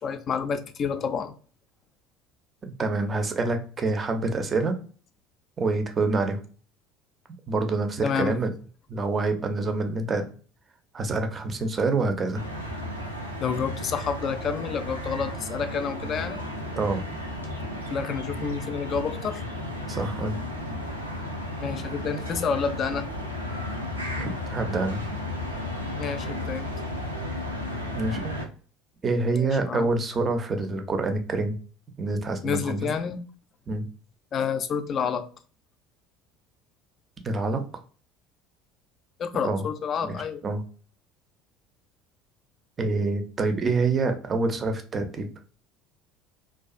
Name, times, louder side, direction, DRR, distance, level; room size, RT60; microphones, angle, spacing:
voice 1, 0.0-1.3 8.0-8.3 13.4-16.4 17.9-19.4 21.6-23.1 26.0-26.7 29.3-29.9 32.4-33.2 34.3-35.3 39.2-40.4, left 6 dB, 40° left, 9 dB, 0.3 m, -29 dB
voice 2, 2.6-4.8 5.6-6.4 7.5-8.5 8.9-10.2 10.9-12.4 16.7-17.0 19.9-20.3 24.2-25.0 27.9-28.3 29.0-31.6 32.0-32.9 33.7-33.8 37.2-37.6 39.4-39.6 40.0-40.2 40.4-40.6 42.8-45.3, right 3 dB, 30° right, 6 dB, 0.5 m, -26 dB
sound 1, 12.3-28.5, left 1 dB, 90° right, 0.4 m, -34 dB
sound 2, 23.1-28.2, left 7 dB, 90° left, 0.5 m, -41 dB
2.3 x 2.3 x 2.3 m, 0.41 s
figure-of-eight pair, 65°, 0 cm